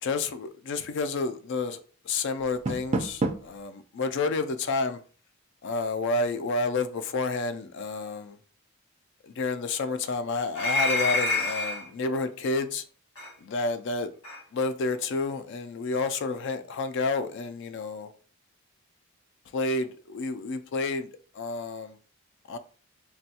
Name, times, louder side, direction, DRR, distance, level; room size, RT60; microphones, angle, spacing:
voice 1, 0.0-5.0 5.6-8.4 9.2-12.8 13.4-14.1 14.5-18.1 19.5-22.0 22.5-22.6, left 3 dB, 55° left, 0.3 m, -30 dB
Door, 2.4-3.6, right 2 dB, 30° right, 0.3 m, -30 dB
sound 1, 10.5-11.9 13.2-13.3 14.2-14.4, left 2 dB, 90° left, 1.4 m, -27 dB
3.1 x 2.2 x 2.8 m
head